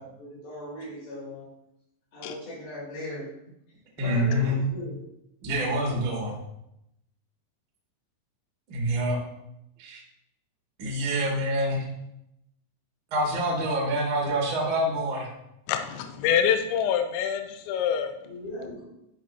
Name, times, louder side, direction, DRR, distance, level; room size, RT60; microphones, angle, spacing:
voice 1, 0.0-1.5 2.1-3.3 4.0-5.0 18.2-18.8, left 1 dB, 55° left, -8 dB, 4.5 m, -38 dB
voice 2, 4.0-4.6 5.4-6.4 8.7-9.2 9.8-10.0 10.8-11.8 13.1-15.3, equal, 80° right, -3 dB, 1.1 m, -26 dB
voice 3, 15.7-18.1, left 8 dB, 85° left, 6 dB, 2.8 m, -25 dB
12.0 x 5.0 x 2.8 m, 0.83 s
omnidirectional pair, 5.5 m